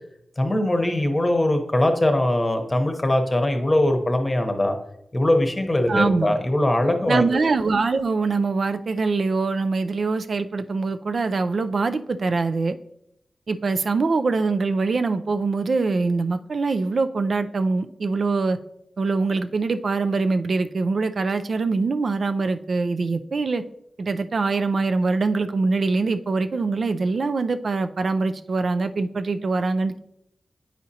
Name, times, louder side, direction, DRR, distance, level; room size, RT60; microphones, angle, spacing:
voice 1, 0.4-4.8 5.1-7.5, left 1 dB, 25° left, 5 dB, 0.9 m, -21 dB
voice 2, 5.9-6.4 7.1-12.8 13.5-18.6 19.0-23.6 24.0-30.0, right 3 dB, 65° right, 9 dB, 0.4 m, -23 dB
9.0 x 5.0 x 2.8 m, 0.78 s
wide cardioid pair, 85°, 0 cm